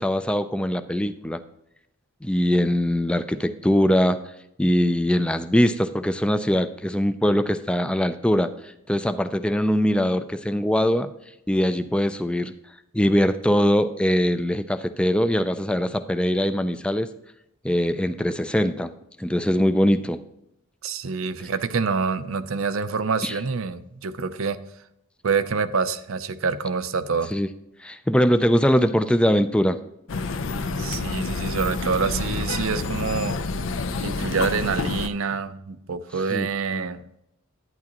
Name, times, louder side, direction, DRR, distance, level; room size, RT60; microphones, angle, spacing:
voice 1, 0.0-1.4 2.2-4.2 4.6-8.5 8.9-11.1 11.5-12.5 12.9-17.1 17.6-18.9 19.2-20.2 23.2-23.3 27.3-27.5 27.8-29.8 36.3-36.5, equal, 5° left, 10 dB, 0.4 m, -22 dB
voice 2, 20.8-24.6 25.2-27.3 30.8-33.4 34.0-37.0, right 5 dB, 70° right, 12 dB, 0.6 m, -26 dB
sound 1, 30.1-35.1, left 3 dB, 60° left, 0.6 m, -28 dB
11.0 x 9.4 x 2.9 m, 0.81 s
head